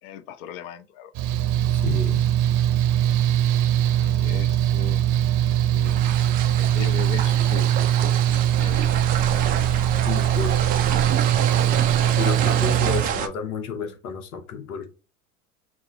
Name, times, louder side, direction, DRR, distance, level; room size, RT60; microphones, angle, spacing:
voice 1, 0.0-1.1 3.9-5.1 5.7-6.0 6.6-8.9, left 9 dB, 50° left, 0.7 m, -38 dB
Mechanical fan, 1.1-13.0, right 11 dB, 40° right, 0.7 m, -21 dB
voice 2, 1.7-2.2 10.1-10.6 12.1-14.9, left 6 dB, 70° left, 1.0 m, -31 dB
sound 1, 5.8-13.3, right 8 dB, 20° right, 0.3 m, -28 dB
3.6 x 2.1 x 4.2 m
hypercardioid pair, 85°, 45 cm